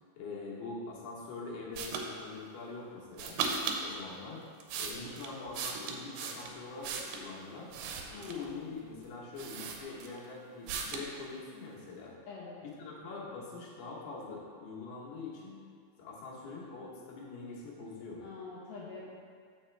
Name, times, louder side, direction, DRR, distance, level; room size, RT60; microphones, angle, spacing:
voice 1, 0.1-3.4 3.8-4.4 4.7-7.7 8.1-12.1 12.6-15.6 16.0-18.2, left 3 dB, 90° left, -5 dB, 3.2 m, -44 dB
sound 1, 1.8-2.1 3.2-3.8 4.4-7.3 7.7-8.5 9.0-9.1 9.4-10.3 10.7-11.1, right 5 dB, 90° right, 2.6 m, -37 dB
voice 2, 8.1-8.9 12.3-12.6 18.2-19.1, left 5 dB, 70° left, -7 dB, 2.4 m, -45 dB
6.8 x 6.5 x 3.2 m, 2.1 s
omnidirectional pair, 4.4 m